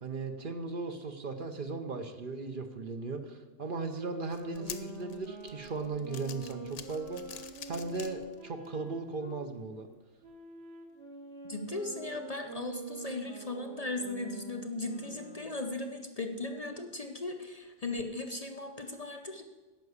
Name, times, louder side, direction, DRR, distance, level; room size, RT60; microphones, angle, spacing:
voice 1, 0.0-9.9, right 3 dB, 50° right, 6 dB, 0.9 m, -37 dB
Wind instrument woodwind instrument, 3.6-9.5 10.2-15.6, right 2 dB, 75° right, 1.7 m, -47 dB
sound 1, 4.3-8.7 9.2-9.3 10.3-10.4, left 8 dB, 90° left, 1.1 m, -47 dB
voice 2, 11.5-19.4, left 2 dB, 35° left, 4 dB, 0.8 m, -37 dB
10.5 x 5.9 x 8.0 m, 1.2 s
omnidirectional pair, 1.2 m